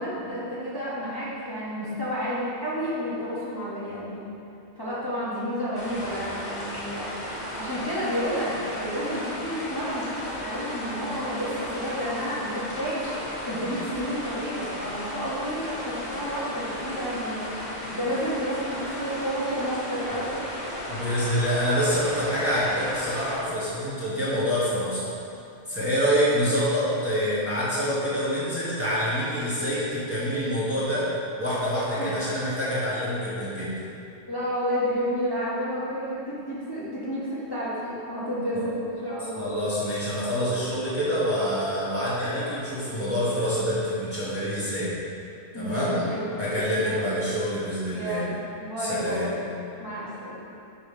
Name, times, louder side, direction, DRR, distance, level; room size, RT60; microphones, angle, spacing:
voice 1, 0.0-4.2 4.8-7.1 7.6-13.0 13.4-17.5 17.9-20.7 32.0-32.1 34.3-39.5 45.5-47.1 47.9-49.4 49.8-50.5, equal, 20° left, -10 dB, 1.2 m, -31 dB
sound 1, 5.7-23.3, left 1 dB, 40° left, 1.5 m, -35 dB
voice 2, 20.9-25.1 25.7-31.0 31.4-33.7 38.5-38.6 39.4-44.9 45.5-46.0 46.4-48.2 48.8-49.2, equal, 15° right, -10 dB, 1.3 m, -26 dB
5.6 x 4.9 x 5.0 m, 2.6 s
omnidirectional pair, 1.1 m